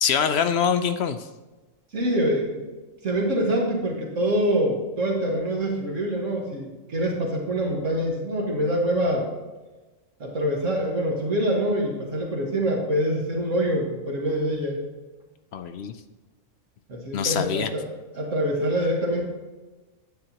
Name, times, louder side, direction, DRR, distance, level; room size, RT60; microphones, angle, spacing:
voice 1, 0.0-1.2 15.5-15.9 17.1-17.7, left 7 dB, 65° left, 9 dB, 0.7 m, -24 dB
voice 2, 1.9-2.6 3.0-9.3 10.2-14.8 16.9-17.9 18.1-19.3, equal, 70° right, -1 dB, 1.8 m, -25 dB
9.8 x 8.8 x 2.9 m, 1.2 s
omnidirectional pair, 1.4 m